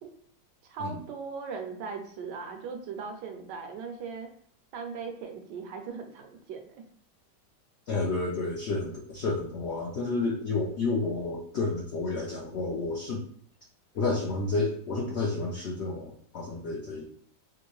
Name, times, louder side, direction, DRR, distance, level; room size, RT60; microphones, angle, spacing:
voice 1, 0.7-4.3 4.7-6.8, right 5 dB, 85° right, 5 dB, 1.3 m, -39 dB
voice 2, 7.9-13.2 13.9-17.0, left 3 dB, 70° left, -2 dB, 0.6 m, -30 dB
3.6 x 2.5 x 3.0 m, 0.62 s
omnidirectional pair, 1.8 m